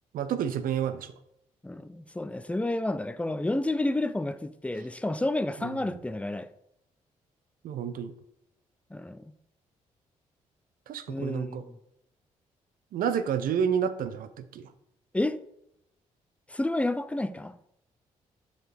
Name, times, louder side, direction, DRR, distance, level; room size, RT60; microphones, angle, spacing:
voice 1, 0.1-1.1 5.6-5.8 7.6-8.1 10.9-11.6 12.9-14.7, right 8 dB, 70° right, 0.5 m, -30 dB
voice 2, 1.6-6.5 8.9-9.3 11.1-11.8 15.1-15.4 16.5-17.6, left 2 dB, 10° left, 0.4 m, -30 dB
6.8 x 4.1 x 3.4 m
hypercardioid pair, 45°, 15 cm